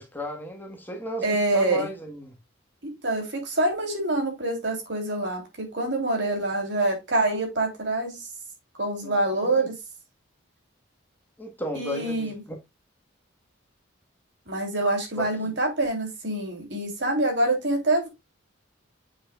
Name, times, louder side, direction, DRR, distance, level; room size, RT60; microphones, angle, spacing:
voice 1, 0.0-2.4 9.0-9.2 9.4-9.7 11.4-12.6 15.1-15.5, left 1 dB, 10° left, 1.4 m, -35 dB
voice 2, 1.2-1.9 3.0-8.3 8.8-9.8 11.7-12.4 14.5-18.1, right 2 dB, 60° right, 3.2 m, -26 dB
7.3 x 6.4 x 2.3 m
head